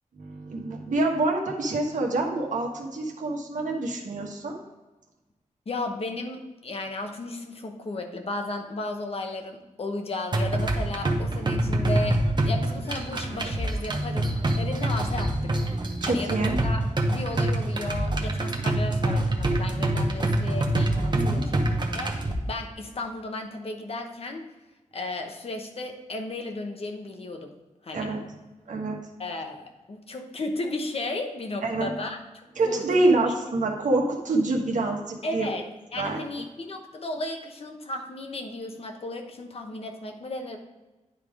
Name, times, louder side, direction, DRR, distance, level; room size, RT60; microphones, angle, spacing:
voice 1, 0.2-4.6 16.0-16.6 21.1-21.5 27.9-28.2 28.7-29.0 31.6-31.9 32.6-35.5 36.0-36.2, right 2 dB, 75° right, 1 dB, 1.3 m, -26 dB
voice 2, 5.7-14.3 14.6-15.5 16.0-16.8 17.1-24.4 24.9-27.5 27.8-28.1 29.2-32.2 32.7-32.8 35.2-35.6 35.9-40.6, left 2 dB, 50° left, 3 dB, 0.9 m, -34 dB
sound 1, 10.3-22.3, right 1 dB, 35° right, 0.8 m, -26 dB
10.0 x 3.6 x 4.7 m, 1.1 s
wide cardioid pair, 140°, 13 cm